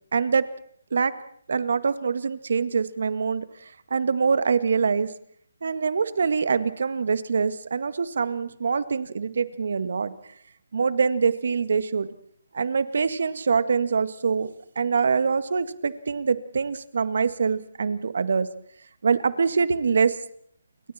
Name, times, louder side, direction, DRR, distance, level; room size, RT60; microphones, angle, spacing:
voice 1, 0.1-0.5 0.9-1.1 1.5-3.4 3.9-5.1 5.6-10.1 10.7-12.1 12.5-14.5 14.8-18.5 19.0-20.1, right 5 dB, 65° right, 12 dB, 1.8 m, -24 dB
29.5 x 23.5 x 4.4 m, 0.64 s
hypercardioid pair, 160°, 0 cm